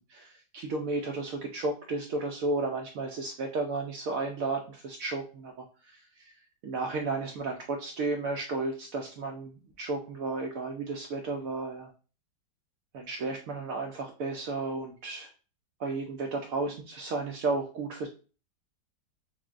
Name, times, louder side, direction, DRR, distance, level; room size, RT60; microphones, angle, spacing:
voice 1, 0.1-6.3 6.6-11.9 12.9-15.3 15.8-18.1, right 3 dB, 80° right, 2 dB, 0.7 m, -33 dB
5.8 x 2.0 x 2.4 m, 0.35 s
omnidirectional pair, 2.0 m